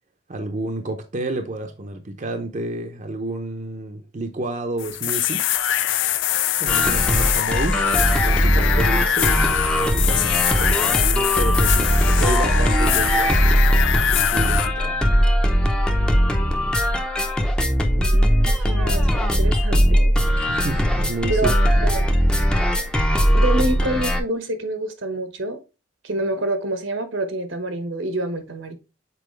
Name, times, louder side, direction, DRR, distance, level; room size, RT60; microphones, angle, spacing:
voice 1, 0.3-5.5 6.6-13.5 14.1-15.0 20.4-21.9, right 2 dB, 40° right, 0.7 m, -30 dB
sound 1, 4.8-14.7, left 10 dB, 70° left, 0.5 m, -23 dB
sound 2, 6.7-24.2, equal, 5° left, 0.7 m, -19 dB
voice 2, 17.9-20.4 21.3-21.5 21.8-22.1 23.3-25.6 26.0-28.7, right 2 dB, 80° right, 1.1 m, -27 dB
6.9 x 4.3 x 3.1 m
head